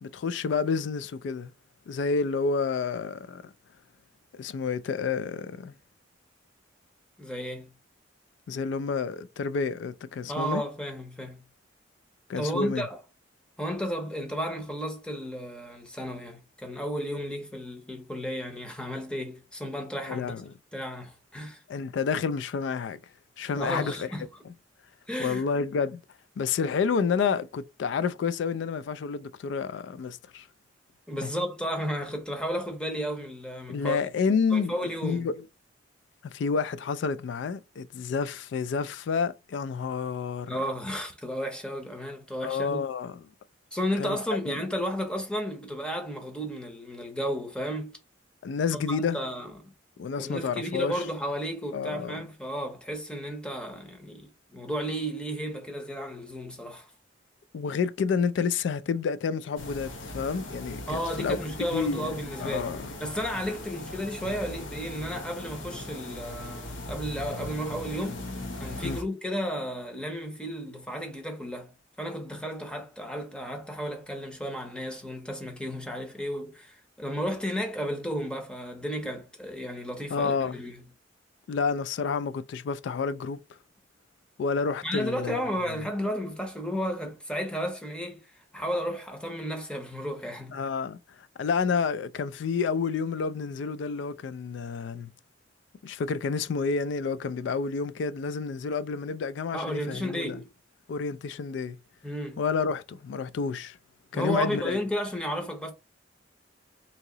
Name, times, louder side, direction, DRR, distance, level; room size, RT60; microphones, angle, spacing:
voice 1, 0.0-1.5 1.9-3.5 4.3-5.7 8.5-10.6 12.3-12.9 20.1-20.5 21.7-23.0 23.4-24.1 25.2-26.0 26.4-30.5 31.2-31.3 33.7-34.7 35.0-35.3 36.2-40.6 42.4-43.2 44.0-44.2 44.5-44.6 48.4-49.2 50.0-51.0 51.7-52.2 57.5-61.4 61.7-62.1 62.4-62.9 68.8-69.0 80.1-80.6 81.5-83.4 84.4-85.4 90.5-91.0 91.4-95.1 95.8-100.4 100.9-101.8 102.4-103.8 104.1-104.8, left 5 dB, 65° left, 0.3 m, -29 dB
voice 2, 7.2-7.7 10.3-11.4 12.4-13.0 13.6-20.3 20.7-21.6 23.6-24.4 25.1-25.5 31.1-34.0 34.5-35.3 40.5-42.8 43.7-48.0 48.7-49.7 50.2-56.9 60.9-62.7 63.0-68.2 68.6-80.8 84.8-88.2 88.5-90.6 99.5-100.5 102.0-102.4 104.1-105.7, equal, 5° left, 0.7 m, -33 dB
sound 1, 59.6-69.0, left 1 dB, 85° left, 0.9 m, -39 dB
2.9 x 2.8 x 3.8 m
head